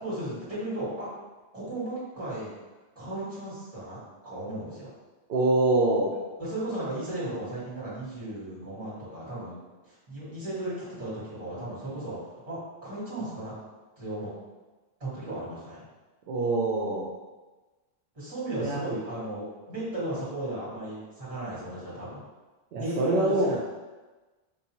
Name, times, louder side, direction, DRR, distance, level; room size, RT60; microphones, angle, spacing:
voice 1, 0.0-1.1 1.5-2.5 2.9-4.0 4.2-4.9 6.4-13.5 14.0-14.3 15.0-15.8 18.1-22.2 22.7-23.6, right 1 dB, 35° right, -8 dB, 1.5 m, -35 dB
voice 2, 5.3-6.1 16.3-17.1 18.6-18.8 22.7-23.5, right 2 dB, 65° right, -4 dB, 0.7 m, -24 dB
3.7 x 2.6 x 2.9 m, 1.2 s
omnidirectional pair, 1.0 m